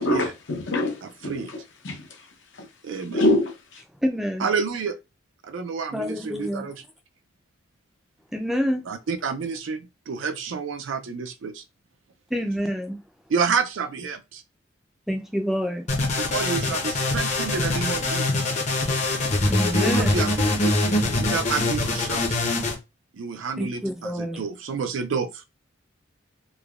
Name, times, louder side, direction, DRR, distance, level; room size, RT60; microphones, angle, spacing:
voice 1, 0.0-2.0 3.1-3.8, left 1 dB, 75° left, 0.7 m, -25 dB
voice 2, 1.0-1.5 2.8-3.2 4.4-5.0 5.4-6.8 8.9-11.6 13.3-14.4 16.2-18.4 19.7-22.4 23.1-25.4, right 5 dB, 85° right, 0.4 m, -29 dB
voice 3, 4.0-4.5 5.9-6.7 8.3-8.9 12.3-13.0 15.1-15.9 19.5-20.1 23.6-24.4, equal, ahead, 0.4 m, -27 dB
sound 1, 15.9-22.7, left 2 dB, 35° left, 0.6 m, -23 dB
3.1 x 2.1 x 2.4 m
head